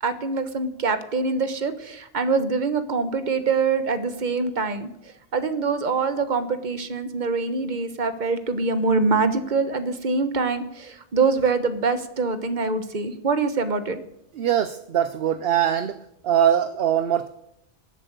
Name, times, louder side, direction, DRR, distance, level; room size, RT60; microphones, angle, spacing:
voice 1, 0.0-14.0, right 4 dB, 40° right, 11 dB, 1.2 m, -24 dB
voice 2, 14.4-16.0 16.2-17.3, right 10 dB, 60° right, 11 dB, 0.9 m, -22 dB
19.5 x 7.8 x 8.1 m, 0.82 s
omnidirectional pair, 1.2 m